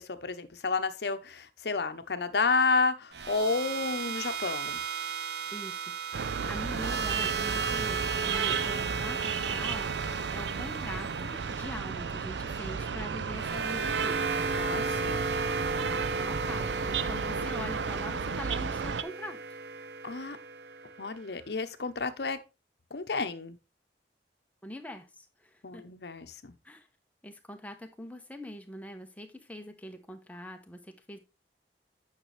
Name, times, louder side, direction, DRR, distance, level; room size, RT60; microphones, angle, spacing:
voice 1, 0.0-4.8 6.4-6.5 14.5-15.3 20.0-20.4 21.0-22.4 22.9-23.6 25.6-26.5, left 4 dB, 65° left, 0.8 m, -31 dB
sound 1, 3.1-21.3, right 5 dB, 70° right, 0.8 m, -35 dB
voice 2, 5.5-14.2 15.8-19.6 24.6-25.8 26.6-26.9 27.2-31.2, left 1 dB, 10° left, 0.9 m, -43 dB
sound 2, 6.1-19.0, right 6 dB, 90° right, 0.5 m, -33 dB
8.9 x 6.1 x 3.2 m
head